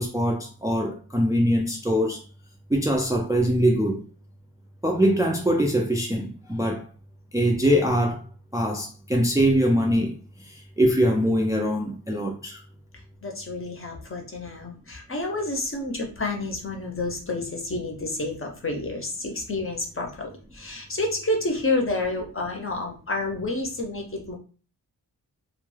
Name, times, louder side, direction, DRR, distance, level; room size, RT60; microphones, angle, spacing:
voice 1, 0.0-2.2 2.7-4.0 4.8-6.8 7.3-8.2 8.5-12.6, equal, 10° right, 0.4 m, -23 dB
voice 2, 13.2-24.4, left 2 dB, 35° left, 0.6 m, -29 dB
2.2 x 2.2 x 3.1 m
wide cardioid pair, 105°, 38 cm